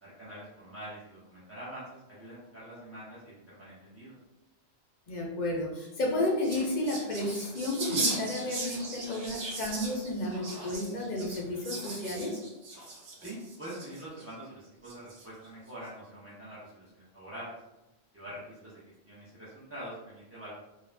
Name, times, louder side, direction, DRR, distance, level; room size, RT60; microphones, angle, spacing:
voice 1, 0.0-4.1 13.2-17.6 18.1-18.8 19.1-20.5, right 1 dB, 20° right, -10 dB, 0.4 m, -45 dB
voice 2, 5.1-12.4, left 1 dB, 55° left, -1 dB, 0.6 m, -32 dB
sound 1, 5.8-14.2 14.8-15.5, right 2 dB, 65° right, 0.9 m, -38 dB
2.4 x 2.0 x 3.1 m, 0.97 s
omnidirectional pair, 1.1 m